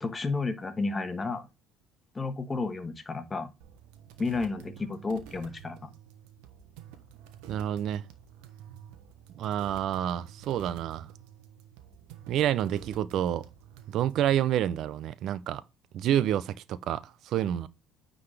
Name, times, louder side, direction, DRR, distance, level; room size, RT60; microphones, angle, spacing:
voice 1, 0.0-1.5 2.1-3.5 4.2-5.9, left 3 dB, 25° left, 1.2 m, -32 dB
sound 1, 3.6-14.3, right 9 dB, 80° right, 1.1 m, -50 dB
voice 2, 7.5-8.0 9.3-11.1 12.3-13.5 13.9-15.6 15.9-17.7, right 11 dB, 60° right, 0.5 m, -28 dB
9.3 x 4.0 x 3.4 m
supercardioid pair, 75°, 0 cm